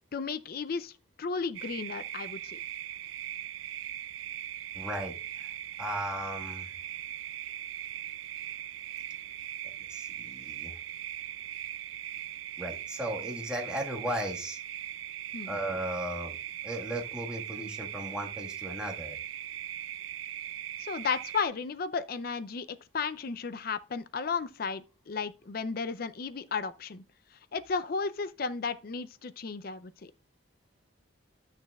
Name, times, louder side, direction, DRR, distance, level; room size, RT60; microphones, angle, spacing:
voice 1, 0.1-0.9 1.2-2.6 15.3-15.6 20.8-27.0 27.5-30.1, left 5 dB, 50° left, 0.5 m, -34 dB
sound 1, 1.5-21.4, right 12 dB, 80° right, 0.4 m, -40 dB
voice 2, 4.7-5.5 5.8-6.7 9.9-10.7 12.6-14.6 15.5-16.4 16.6-19.2, right 1 dB, 5° right, 1.5 m, -36 dB
12.0 x 6.5 x 2.3 m
head